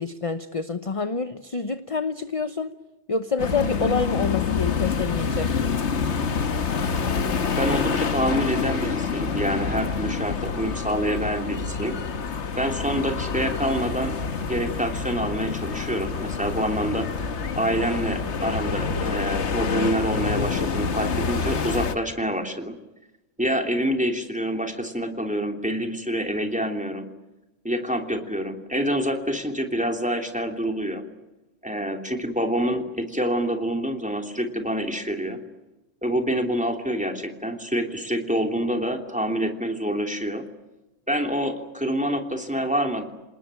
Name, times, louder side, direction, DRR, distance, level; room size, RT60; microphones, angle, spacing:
voice 1, 0.0-2.7 3.1-5.5, left 4 dB, 30° left, 10 dB, 0.9 m, -27 dB
sound 1, 3.4-22.0, left 5 dB, 70° left, 1.5 m, -27 dB
voice 2, 7.6-12.0 12.6-17.1 17.6-22.7 23.4-27.1 27.6-31.0 31.6-35.4 36.0-40.5 41.1-43.1, equal, 5° right, 4 dB, 3.0 m, -27 dB
27.5 x 20.0 x 9.0 m, 1.0 s
omnidirectional pair, 1.3 m